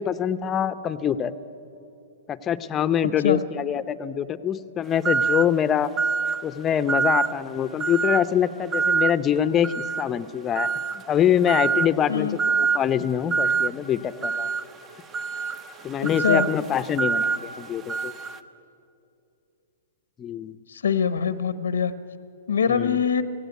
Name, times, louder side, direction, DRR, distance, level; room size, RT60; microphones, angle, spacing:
voice 1, 0.0-1.3 2.3-5.9 6.4-10.7 10.9-14.5 15.8-18.1 20.2-20.6 22.7-23.0, left 9 dB, 25° left, 13 dB, 0.7 m, -24 dB
sound 1, 5.0-5.6 6.0-6.4 6.9-7.4 7.8-8.3 8.7-9.2 9.6-10.1 10.6-11.0 11.5-11.9 12.4-12.8 13.3-13.7 14.2-18.4, right 5 dB, 25° right, 0.9 m, -25 dB
voice 2, 20.7-21.9 22.5-23.2, left 7 dB, 85° left, 14 dB, 0.9 m, -23 dB
17.0 x 16.5 x 9.3 m, 2.7 s
hypercardioid pair, 125°, 0 cm